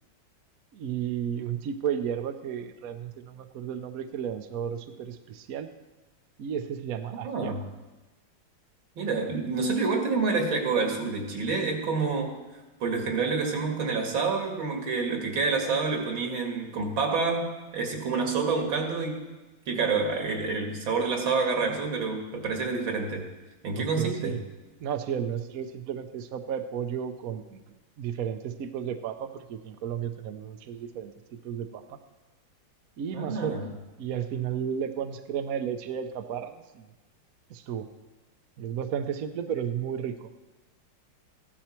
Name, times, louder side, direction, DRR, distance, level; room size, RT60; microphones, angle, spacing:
voice 1, 0.7-5.7 6.4-7.5 23.8-24.4 24.8-27.6 28.0-31.1 31.4-32.0 33.0-33.6 34.0-36.9 37.5-37.9 38.6-40.3, right 8 dB, 60° right, 8 dB, 1.0 m, -33 dB
voice 2, 7.1-7.6 9.0-12.4 12.8-19.2 19.7-23.3 23.6-24.4 33.1-33.7, right 4 dB, 80° right, 2 dB, 2.6 m, -28 dB
15.0 x 11.5 x 4.4 m, 1.1 s
omnidirectional pair, 2.1 m